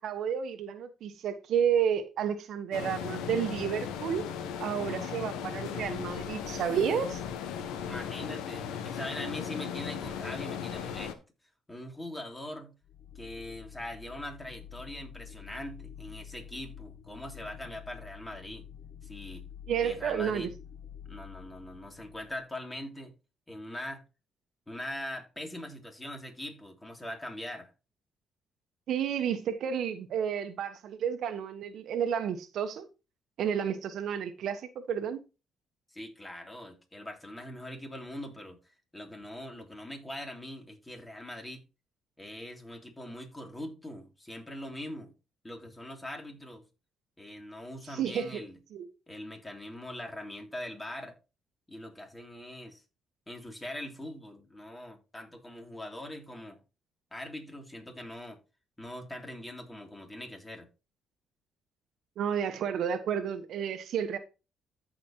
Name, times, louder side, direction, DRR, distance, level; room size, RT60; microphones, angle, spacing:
voice 1, 0.0-4.3 4.6-7.2 19.7-20.5 28.9-32.9 33.4-35.2 47.9-48.4 48.7-48.9 62.2-64.2, right 8 dB, 70° right, 1.2 m, -31 dB
sound 1, 2.7-11.1, left 8 dB, 85° left, 1.2 m, -37 dB
voice 2, 7.9-11.2 11.7-12.7 13.1-18.7 19.0-19.4 19.8-20.5 21.1-23.1 23.5-24.0 24.7-27.7 35.9-41.6 42.2-45.1 45.4-46.6 47.2-48.6 49.1-51.2 51.7-52.8 53.3-56.6 57.1-58.4 58.8-60.7, left 1 dB, 15° left, 3.1 m, -42 dB
sound 2, 12.8-22.5, left 9 dB, 65° left, 0.6 m, -48 dB
14.0 x 5.1 x 3.0 m
supercardioid pair, 65°, 0 cm